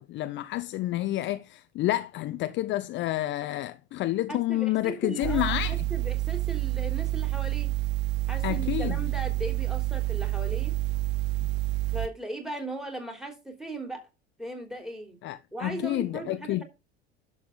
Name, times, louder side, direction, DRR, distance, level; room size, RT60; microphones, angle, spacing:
voice 1, 0.0-5.8 8.4-9.0 15.2-16.6, left 15 dB, 35° left, 0.6 m, -29 dB
voice 2, 4.3-7.7 8.3-10.7 11.9-14.1 14.4-15.2 15.5-16.6, right 2 dB, ahead, 3.4 m, -38 dB
sound 1, 5.2-12.1, right 18 dB, 30° right, 0.6 m, -28 dB
11.5 x 7.4 x 3.8 m
figure-of-eight pair, 75°, 34 cm